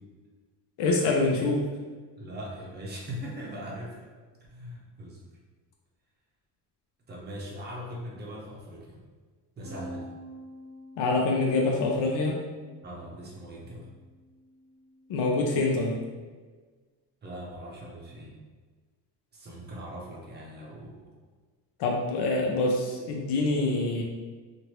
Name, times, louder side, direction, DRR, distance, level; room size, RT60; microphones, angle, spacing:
voice 1, 0.8-1.6 11.0-12.4 15.1-16.0 21.8-24.0, left 2 dB, 75° left, -1 dB, 0.6 m, -25 dB
voice 2, 2.2-4.0 4.5-5.2 7.1-9.0 9.6-10.1 12.8-13.9 17.2-18.4 19.3-21.1, equal, 25° right, -4 dB, 0.7 m, -40 dB
Bass guitar, 9.6-15.9, equal, 60° right, 0.8 m, -48 dB
3.0 x 2.5 x 2.9 m, 1.4 s
cardioid pair, 145°, 41 cm